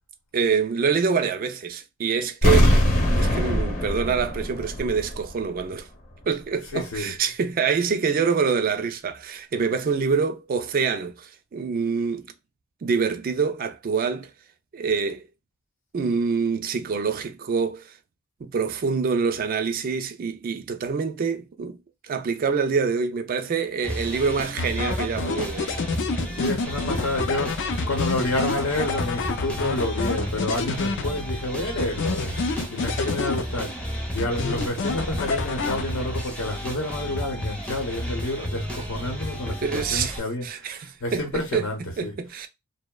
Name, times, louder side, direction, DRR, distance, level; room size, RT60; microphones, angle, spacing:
voice 1, 0.3-2.8 3.2-5.9 6.3-12.3 12.8-14.3 14.7-15.3 15.9-17.9 18.4-21.8 22.0-25.8 39.5-41.7 42.0-42.5, right 5 dB, 45° right, 0.3 m, -26 dB
sound 1, 2.4-5.3 5.6-5.7, equal, 35° left, 0.9 m, -21 dB
voice 2, 6.7-7.1 26.3-32.3 32.7-33.8 34.1-42.1, left 1 dB, 80° left, 0.8 m, -29 dB
sound 2, 23.8-40.2, equal, 5° left, 0.5 m, -32 dB
sound 3, 24.6-31.4 31.8-33.8 34.2-36.2, left 4 dB, 60° left, 0.4 m, -29 dB
2.7 x 2.0 x 2.2 m
head